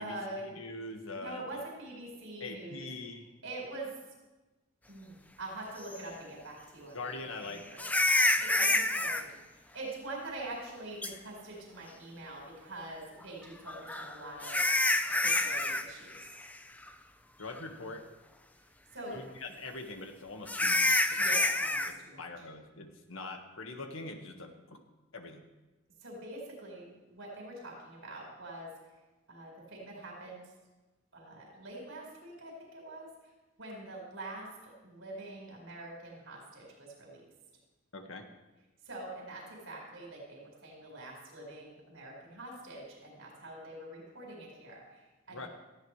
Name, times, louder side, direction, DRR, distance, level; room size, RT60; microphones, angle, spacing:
voice 1, 0.0-0.5 1.1-2.9 3.4-3.9 4.9-7.1 7.5-9.4 9.7-14.6 15.0-16.2 18.9-19.3 21.2-22.3 26.0-28.7 29.3-30.4 31.1-33.1 33.6-37.3 38.9-45.5, right 2 dB, 85° right, -2 dB, 4.7 m, -44 dB
voice 2, 0.5-1.5 2.4-3.3 6.9-7.6 15.2-15.5 17.4-18.0 19.1-21.3 22.2-24.8 25.1-25.4 37.9-38.2 45.3-45.5, left 3 dB, 90° left, 4 dB, 1.7 m, -43 dB
sound 1, 5.9-6.0 7.8-9.2 11.0-11.1 13.7-15.9 16.1-16.5 16.9-17.0 17.6-17.7 20.5-21.9, left 2 dB, 10° left, 0.5 m, -27 dB
18.0 x 14.0 x 3.3 m, 1.1 s
head